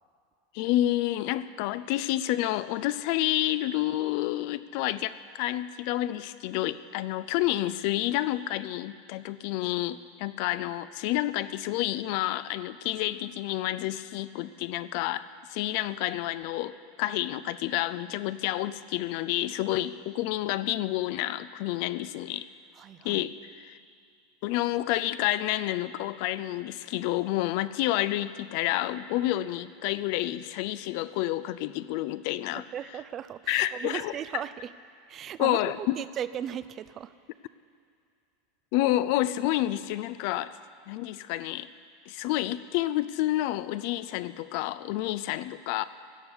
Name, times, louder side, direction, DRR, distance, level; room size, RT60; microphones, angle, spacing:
voice 1, 0.5-15.2 15.5-22.5 23.0-23.8 24.4-32.6 33.5-34.1 35.4-35.9 38.7-40.6 40.9-41.7 42.1-45.8, left 15 dB, 50° left, 14 dB, 0.4 m, -29 dB
voice 2, 22.7-23.2 32.5-34.7 35.1-37.1, right 9 dB, 35° right, 15 dB, 0.5 m, -37 dB
16.5 x 7.0 x 9.7 m, 2.4 s
figure-of-eight pair, 80°, 0 cm